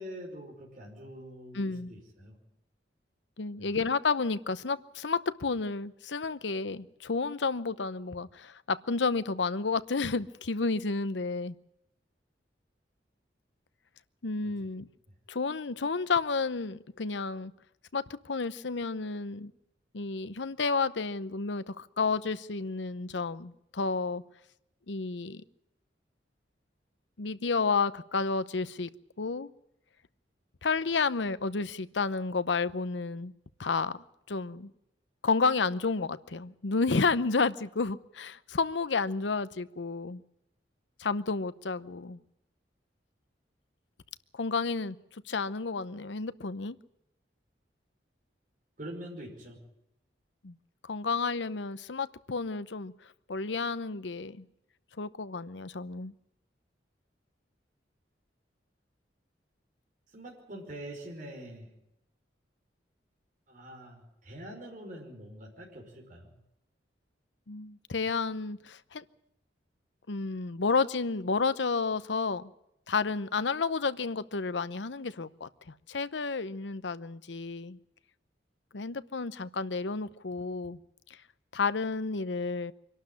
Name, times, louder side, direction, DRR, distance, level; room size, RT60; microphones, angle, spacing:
voice 1, 0.0-2.4 3.6-3.8 14.4-14.5 48.8-49.6 60.1-61.7 63.5-66.3, right 1 dB, 45° right, 0 dB, 5.3 m, -44 dB
voice 2, 1.5-2.0 3.4-11.5 14.2-14.9 15.3-17.5 17.9-19.5 19.9-24.2 24.9-25.4 27.2-28.9 29.2-29.5 30.6-33.3 33.6-34.7 35.2-40.2 41.0-42.2 44.3-45.0 45.3-46.8 50.4-50.6 50.8-52.9 53.3-54.5 55.0-56.1 67.5-69.0 70.1-72.5 72.9-77.8 78.7-80.8 81.1-81.2 81.5-82.7, left 4 dB, 85° left, 15 dB, 0.8 m, -31 dB
24.5 x 12.0 x 9.9 m, 0.81 s
head